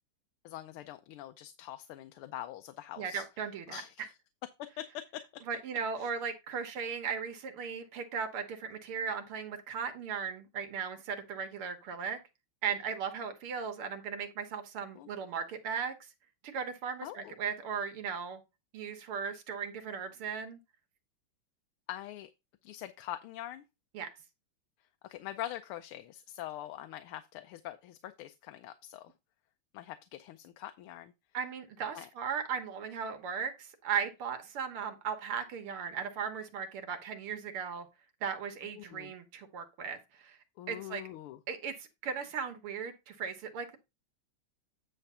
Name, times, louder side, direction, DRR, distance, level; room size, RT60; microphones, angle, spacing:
voice 1, 0.4-3.2 3.7-4.1 4.6-5.4 6.0-6.1 15.0-15.1 17.0-17.3 21.9-22.3 22.6-23.6 25.0-29.1 29.7-31.1 31.9-32.1 38.8-39.1 40.6-41.4, left 13 dB, 80° left, 1.5 m, -44 dB
voice 2, 3.0-3.8 5.5-12.2 12.6-16.1 16.5-18.4 18.7-20.6 23.9-24.1 31.3-37.9 38.2-40.4 40.7-41.0 41.5-43.8, right 6 dB, 80° right, 2.1 m, -37 dB
9.4 x 3.3 x 5.5 m
omnidirectional pair, 2.4 m